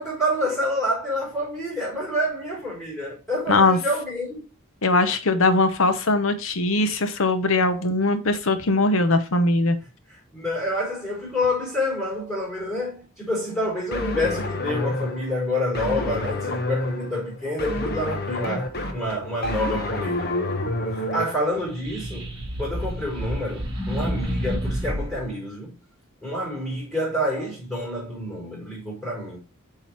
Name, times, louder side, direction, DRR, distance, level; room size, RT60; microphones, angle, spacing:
voice 1, 0.0-4.4 10.1-20.6 20.9-25.7 26.2-29.4, left 1 dB, ahead, 4.4 m, -28 dB
voice 2, 4.8-9.8, left 2 dB, 75° left, 0.9 m, -20 dB
sound 1, 13.9-21.3, left 1 dB, 50° left, 1.2 m, -28 dB
sound 2, 21.6-25.3, equal, 25° right, 3.1 m, -29 dB
7.2 x 3.9 x 4.4 m
head